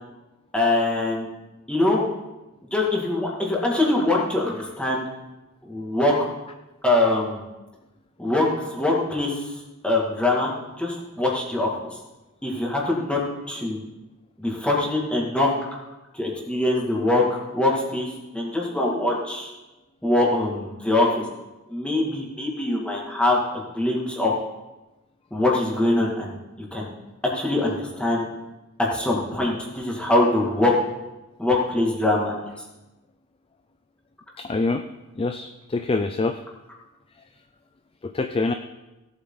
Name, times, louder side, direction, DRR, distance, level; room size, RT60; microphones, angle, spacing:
voice 1, 0.5-1.3 1.7-2.0 2.7-5.0 5.6-6.1 6.8-7.4 8.2-9.4 9.8-11.7 12.4-13.2 13.5-13.8 14.4-15.5 16.1-17.2 17.5-19.5 20.0-21.1 21.7-24.3 25.3-26.9 27.3-28.3 28.9-30.7 31.4-32.3, left 2 dB, 5° left, -3 dB, 2.3 m, -23 dB
voice 2, 34.4-34.8 35.2-36.4 38.0-38.5, left 3 dB, 25° left, 8 dB, 0.4 m, -25 dB
17.0 x 8.2 x 4.0 m, 1.0 s
head